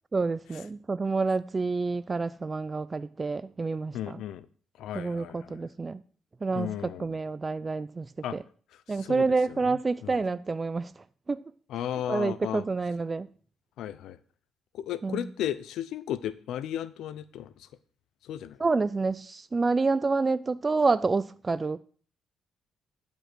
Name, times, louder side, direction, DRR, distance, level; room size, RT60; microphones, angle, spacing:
voice 1, 0.1-4.2 4.9-6.0 6.4-8.4 8.9-11.4 12.1-13.3 15.0-15.3 18.6-21.8, right 3 dB, 30° right, 0.3 m, -28 dB
voice 2, 3.9-4.5 4.8-5.6 6.5-7.1 8.2-8.4 8.9-10.2 11.7-12.6 13.8-14.2 14.7-17.7 18.2-18.6, left 11 dB, 80° left, 0.5 m, -35 dB
11.5 x 5.3 x 6.1 m
cardioid pair, 90°, 0 cm